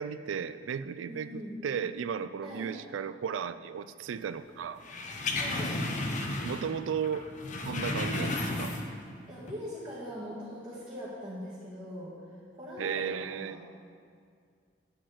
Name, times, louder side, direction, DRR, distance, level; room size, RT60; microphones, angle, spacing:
voice 1, 0.0-4.8 6.4-7.3 7.6-8.7 12.8-13.6, right 7 dB, 85° right, 13 dB, 0.3 m, -35 dB
voice 2, 1.0-1.6 2.4-2.7 5.3-5.7 9.3-12.1 12.6-13.6, equal, 30° right, -12 dB, 1.7 m, -41 dB
sound 1, 4.8-6.8 7.0-9.1 9.4-9.5, left 2 dB, 40° left, 0.8 m, -33 dB
9.9 x 4.3 x 7.5 m, 2.2 s
head